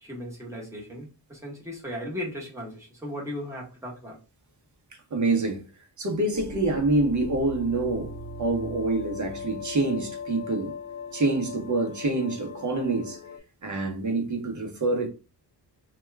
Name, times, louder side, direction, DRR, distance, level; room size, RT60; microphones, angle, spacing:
voice 1, 0.0-4.2, equal, 5° right, 1.0 m, -37 dB
voice 2, 5.1-5.6 6.0-10.7 11.1-13.2 13.6-15.1, right 2 dB, 45° right, 0.8 m, -26 dB
sound 1, 6.3-13.4, left 4 dB, 45° left, 0.7 m, -39 dB
2.8 x 2.3 x 3.2 m
wide cardioid pair, 165°, 41 cm